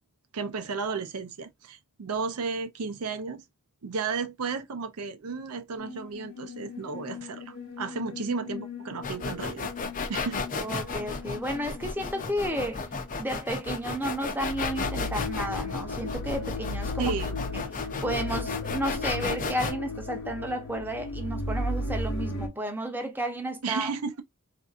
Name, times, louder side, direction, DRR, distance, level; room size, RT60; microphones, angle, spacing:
voice 1, 0.3-3.4 3.8-9.7 10.1-10.4 17.0-17.4 23.6-24.1, right 5 dB, 90° right, 0.6 m, -33 dB
sound 1, 5.8-13.2 13.6-14.0 14.4-22.5, left 2 dB, 75° left, 1.0 m, -36 dB
sound 2, 9.0-19.7, left 4 dB, 35° left, 0.6 m, -33 dB
voice 2, 10.5-12.9 13.2-17.1 17.5-17.6 18.0-23.9, right 1 dB, 10° right, 0.7 m, -32 dB
3.7 x 2.6 x 2.4 m
head